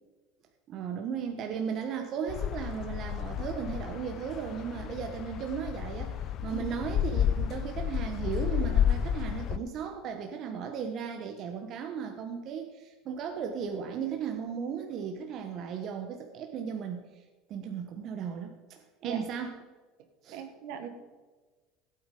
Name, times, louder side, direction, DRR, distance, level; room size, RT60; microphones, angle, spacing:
voice 1, 0.7-17.2 17.5-19.6 20.2-20.4, right 7 dB, 45° right, 4 dB, 1.1 m, -36 dB
sound 1, 2.3-9.6, left 9 dB, 45° left, 0.7 m, -31 dB
voice 2, 20.3-20.9, right 9 dB, 70° right, 6 dB, 1.7 m, -38 dB
14.5 x 8.9 x 5.3 m, 1.3 s
supercardioid pair, 130°, 0 cm